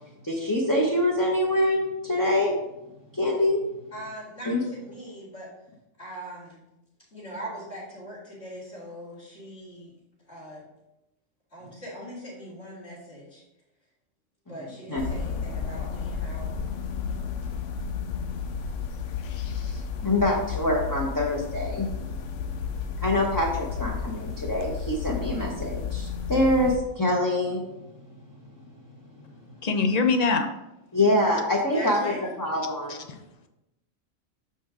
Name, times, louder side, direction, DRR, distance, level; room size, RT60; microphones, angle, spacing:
voice 1, 0.2-2.5 3.1-3.6 4.4-4.6 14.5-14.6 14.9-15.0 19.5-21.9 23.0-27.6 30.9-33.0, left 1 dB, 20° left, -3 dB, 0.9 m, -25 dB
voice 2, 3.9-5.5 6.0-6.6 7.1-9.9 10.3-10.6 11.5-13.4 14.5-16.5 31.7-32.3, right 1 dB, 60° left, -10 dB, 2.8 m, -40 dB
sound 1, 15.0-26.8, left 6 dB, 75° left, 1.0 m, -32 dB
voice 3, 29.6-30.5 32.9-33.2, left 4 dB, 45° left, 6 dB, 0.6 m, -23 dB
6.3 x 5.5 x 3.7 m, 0.89 s
omnidirectional pair, 1.3 m